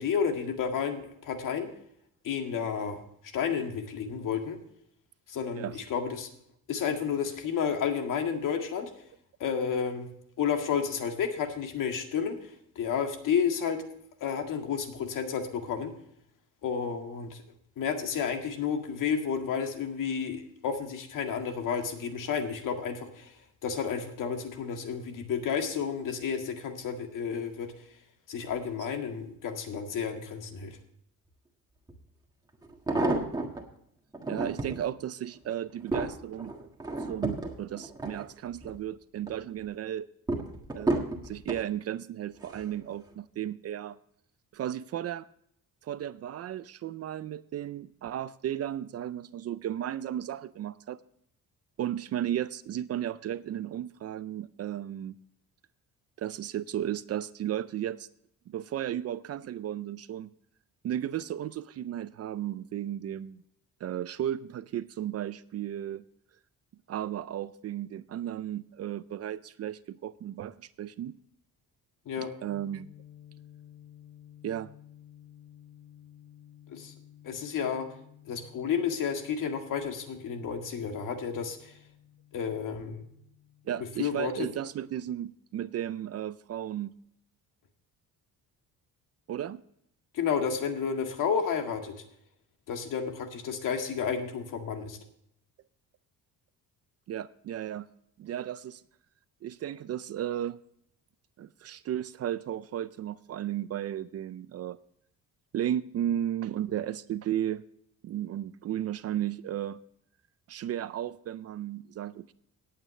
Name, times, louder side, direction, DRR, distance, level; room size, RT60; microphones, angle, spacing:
voice 1, 0.0-1.7 2.2-3.0 3.3-4.6 5.3-6.3 6.7-8.9 9.4-10.1 10.4-13.8 14.2-15.9 16.6-17.4 17.8-23.4 23.6-27.7 28.3-30.8 72.1-72.3 76.7-76.9 77.2-77.9 78.3-81.7 82.3-83.0 84.0-84.5 90.1-91.9 92.7-95.0, left 7 dB, 60° left, 4 dB, 2.0 m, -31 dB
sound 1, 31.9-32.0 32.6-33.6 34.1-34.8 35.4-38.8 39.2-39.6 40.3-41.7 42.4-42.8 43.1-43.2, right 2 dB, 10° right, 1.6 m, -32 dB
voice 2, 34.2-36.5 37.1-40.1 40.7-44.0 44.5-45.3 45.8-51.0 51.8-55.1 56.2-58.1 58.5-60.3 60.8-63.4 63.8-66.0 66.9-71.1 72.2-72.9 74.4-74.7 83.7-86.9 89.3-89.6 97.1-97.9 98.2-98.8 99.4-100.6 101.4-104.8 105.5-107.6 108.0-109.8 110.5-112.3, right 11 dB, 45° right, 16 dB, 0.5 m, -34 dB
sound 2, 72.5-84.8, left 10 dB, 30° left, 3.4 m, -54 dB
18.0 x 8.8 x 3.2 m, 0.71 s
cardioid pair, 155°, 35 cm